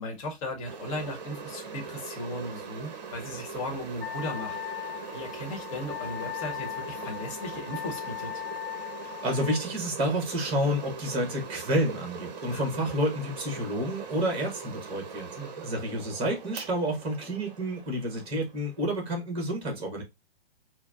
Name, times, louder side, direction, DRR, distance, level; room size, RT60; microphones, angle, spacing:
voice 1, 0.0-4.6 5.1-8.3 12.5-12.7 15.3-15.6, left 1 dB, 35° left, 1.2 m, -36 dB
sound 1, 0.6-19.1, right 5 dB, 40° right, 0.7 m, -42 dB
Wind instrument woodwind instrument, 4.0-9.6, left 14 dB, 65° left, 0.6 m, -38 dB
voice 2, 9.2-15.3 15.6-20.0, equal, 15° right, 1.2 m, -29 dB
4.5 x 2.1 x 2.3 m
figure-of-eight pair, 120°, 32 cm